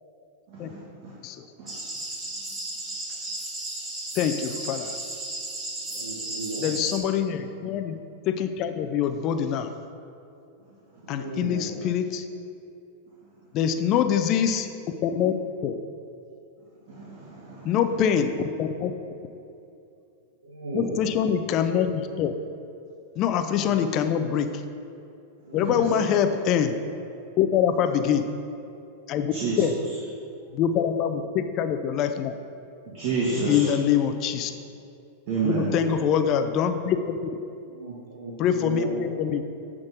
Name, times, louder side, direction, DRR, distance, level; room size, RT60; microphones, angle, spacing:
voice 1, 0.5-1.1 1.6-1.7 16.9-17.8 25.6-25.9 29.3-29.6 32.9-33.7 35.3-35.8, right 4 dB, 50° right, -6 dB, 1.7 m, -29 dB
sound 1, 1.7-7.0, right 2 dB, 20° right, 2.0 m, -34 dB
voice 2, 4.2-4.9 6.6-8.0 8.3-9.7 11.1-12.2 13.5-14.7 15.0-15.4 15.6-15.8 17.7-18.3 18.6-18.9 20.7-22.4 23.2-24.5 25.5-26.8 27.4-28.3 29.1-29.8 30.5-32.3 33.5-34.5 35.4-37.2 38.4-39.4, left 8 dB, 40° left, 8 dB, 0.5 m, -24 dB
voice 3, 5.9-6.7 11.0-11.8 20.4-21.2 23.5-23.7 25.5-26.1 29.6-29.7 33.3-33.6 35.4-35.9 37.6-39.0, right 2 dB, 80° right, -5 dB, 1.2 m, -36 dB
10.5 x 3.7 x 6.2 m, 2.7 s
hypercardioid pair, 100°, 0 cm